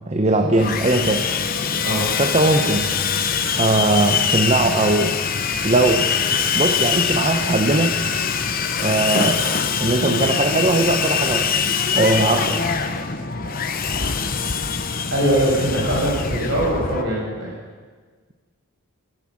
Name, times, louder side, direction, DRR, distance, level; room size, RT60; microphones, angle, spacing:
voice 1, 0.1-1.3 2.2-2.9 3.6-5.2 5.6-6.1 6.5-8.0 8.8-9.4 9.8-11.5 11.9-12.6, right 2 dB, 30° right, 5 dB, 0.8 m, -19 dB
Sawing, 0.6-17.0, left 6 dB, 40° left, 0.8 m, -23 dB
voice 2, 15.1-17.5, right 1 dB, 55° right, -5 dB, 6.1 m, -21 dB
15.5 x 11.0 x 7.4 m, 1.5 s
head